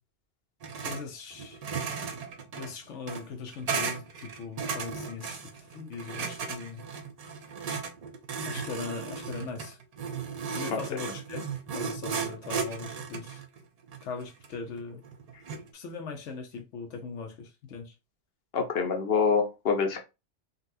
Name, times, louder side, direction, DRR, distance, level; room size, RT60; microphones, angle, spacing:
sound 1, 0.6-1.0 1.3-15.7, right 5 dB, 55° right, 0.4 m, -36 dB
voice 1, 0.8-1.6 2.6-6.8 8.4-9.8 10.5-13.4 14.0-15.0 15.7-17.9, left 5 dB, 85° left, 1.0 m, -40 dB
voice 2, 10.7-11.0 18.5-20.0, left 5 dB, 60° left, 0.9 m, -26 dB
3.9 x 2.3 x 2.6 m
omnidirectional pair, 1.2 m